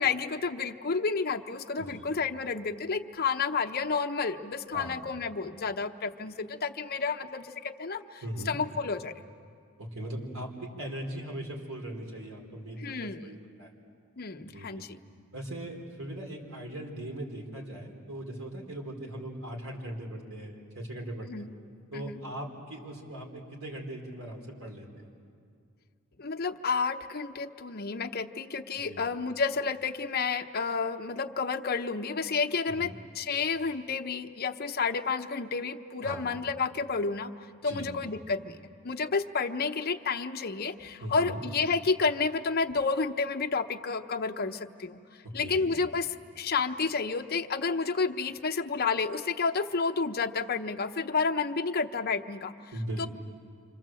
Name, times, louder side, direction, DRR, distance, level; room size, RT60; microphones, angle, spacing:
voice 1, 0.0-9.1 12.8-13.3 14.2-14.9 21.2-21.5 21.9-22.2 26.2-37.3 37.6-38.6 38.8-45.0 45.3-46.1 46.4-52.5 53.0-53.1, left 4 dB, 50° left, 5 dB, 0.8 m, -30 dB
voice 2, 8.2-8.6 9.8-13.7 14.4-14.8 15.3-21.5 21.9-25.1 28.7-29.0 32.7-32.9 36.0-36.2 37.6-38.0 41.0-41.4 45.4-45.7 52.7-53.1, right 1 dB, 75° right, 1 dB, 4.6 m, -39 dB
28.5 x 26.0 x 7.7 m, 2.3 s
head